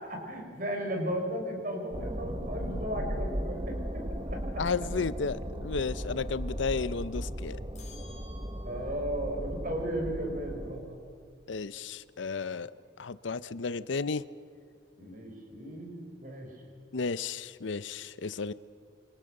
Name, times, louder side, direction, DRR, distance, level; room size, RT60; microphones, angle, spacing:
voice 1, 0.0-4.4 8.6-11.0 15.0-16.5, right 1 dB, 45° right, 2 dB, 5.6 m, -35 dB
sound 1, 1.9-10.8, equal, 25° right, 1.4 m, -36 dB
voice 2, 4.6-7.6 11.5-12.7 13.0-14.2 16.9-18.5, left 4 dB, 70° left, 16 dB, 0.6 m, -33 dB
sound 2, 7.7-9.1, left 2 dB, 35° left, 3.9 m, -53 dB
28.0 x 25.0 x 6.7 m, 2.3 s
head